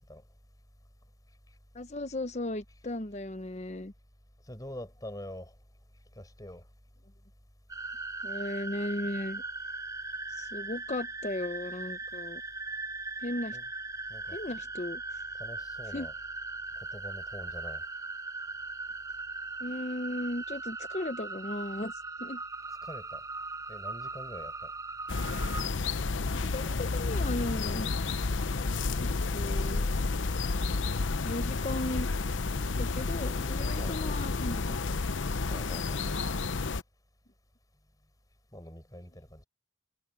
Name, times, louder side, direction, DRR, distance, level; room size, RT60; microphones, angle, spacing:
voice 1, 1.7-3.9 8.2-9.4 10.4-12.4 13.2-13.6 14.3-15.0 15.9-16.1 19.6-22.4 26.3-27.9 29.0-29.9 31.2-32.1 32.8-34.9, left 1 dB, 35° left, 1.0 m, -36 dB
voice 2, 4.5-5.6 6.1-6.7 13.5-13.7 14.1-14.4 15.3-16.2 16.8-17.8 22.8-23.2 23.7-24.7 33.7-34.3 35.5-36.2 38.5-39.4, left 1 dB, 20° left, 5.8 m, -45 dB
sound 1, 7.7-25.7, right 3 dB, 20° right, 4.8 m, -39 dB
sound 2, 25.1-36.8, left 3 dB, 85° left, 0.8 m, -31 dB
head